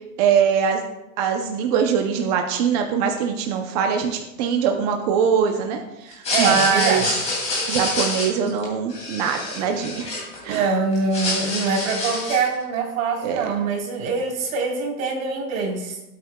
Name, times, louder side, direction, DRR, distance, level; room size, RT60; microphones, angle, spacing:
voice 1, 0.2-0.8 1.2-7.1 7.7-10.1 10.4-10.7 13.2-13.5, right 7 dB, 30° right, 4 dB, 0.5 m, -22 dB
sound 1, 6.1-10.6 10.9-12.5, left 3 dB, 15° left, 2.4 m, -27 dB
voice 2, 6.3-7.1 9.5-9.7 10.5-16.0, right 4 dB, 70° right, -1 dB, 3.5 m, -24 dB
17.0 x 8.5 x 2.2 m, 0.94 s
supercardioid pair, 175°, 42 cm